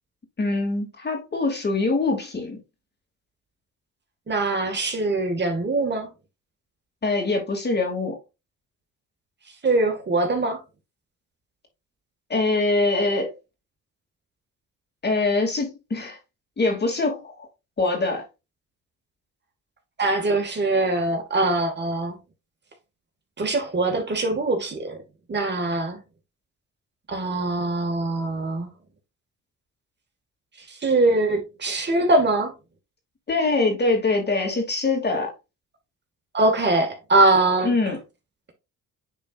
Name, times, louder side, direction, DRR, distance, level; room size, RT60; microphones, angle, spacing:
voice 1, 0.4-2.6 7.0-8.2 12.3-13.3 15.0-16.2 16.6-17.5 17.8-18.2 33.3-35.3 37.6-38.0, left 3 dB, 35° left, 3.0 m, -23 dB
voice 2, 4.3-6.1 9.6-10.6 20.0-22.2 23.4-25.0 25.3-26.0 27.1-28.7 30.7-32.5 36.3-37.7, right 2 dB, 35° right, 2.2 m, -22 dB
9.2 x 4.5 x 2.6 m
cardioid pair, 90°, 30 cm